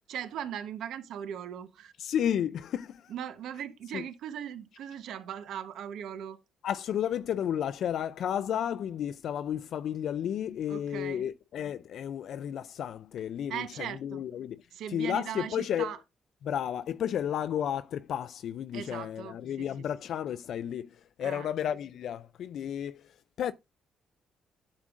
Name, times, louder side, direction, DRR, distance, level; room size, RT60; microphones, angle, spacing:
voice 1, 0.1-1.9 3.1-6.4 10.7-11.2 13.5-14.2 14.7-16.0 18.7-19.7 21.2-21.5, right 9 dB, 80° right, 1.0 m, -39 dB
voice 2, 2.0-3.1 3.9-4.0 6.6-14.6 14.9-15.9 16.4-23.5, left 9 dB, 70° left, 0.3 m, -32 dB
11.0 x 7.4 x 2.5 m
cardioid pair, 90°, 0 cm